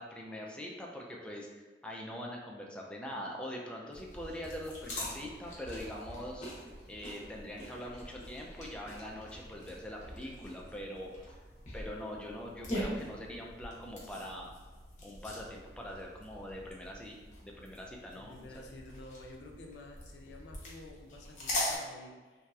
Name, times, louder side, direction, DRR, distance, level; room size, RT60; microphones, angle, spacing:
voice 1, 0.0-6.5 6.9-11.3 11.7-14.5 15.0-17.2 17.4-18.5, equal, 5° left, -1 dB, 0.3 m, -43 dB
sound 1, 3.9-21.8, left 1 dB, 45° left, 0.7 m, -43 dB
voice 2, 18.1-22.5, left 2 dB, 75° left, 1 dB, 0.4 m, -51 dB
3.0 x 2.8 x 2.3 m, 1.3 s
head